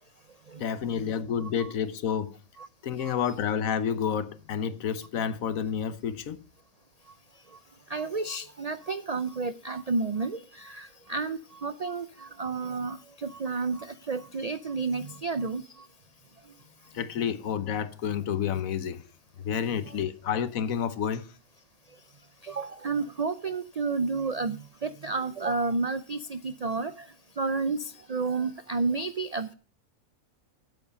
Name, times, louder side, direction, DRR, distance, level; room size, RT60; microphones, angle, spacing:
voice 1, 0.6-2.3 2.8-6.4 16.9-19.0 19.4-21.2, left 8 dB, 75° left, 1.3 m, -29 dB
voice 2, 7.9-15.6 19.9-20.0 22.4-27.1 27.4-29.5, right 4 dB, 80° right, 0.3 m, -31 dB
9.0 x 8.2 x 5.1 m
omnidirectional pair, 1.5 m